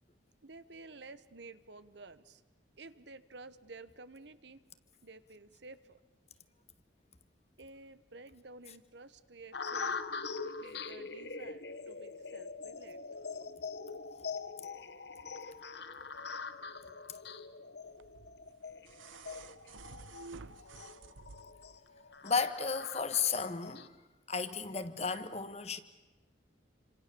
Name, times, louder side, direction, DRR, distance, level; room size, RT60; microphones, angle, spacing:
voice 1, 0.4-2.4 2.8-4.6 5.0-6.0 7.6-10.0 10.6-13.0, right 3 dB, 65° right, 1.2 m, -52 dB
sound 1, 9.5-23.9, left 4 dB, 60° left, 1.2 m, -43 dB
sound 2, 18.0-21.8 23.0-23.1, right 4 dB, 90° right, 0.8 m, -51 dB
voice 2, 22.2-24.0 24.3-25.8, left 5 dB, 35° left, 1.4 m, -33 dB
29.0 x 26.5 x 7.0 m
head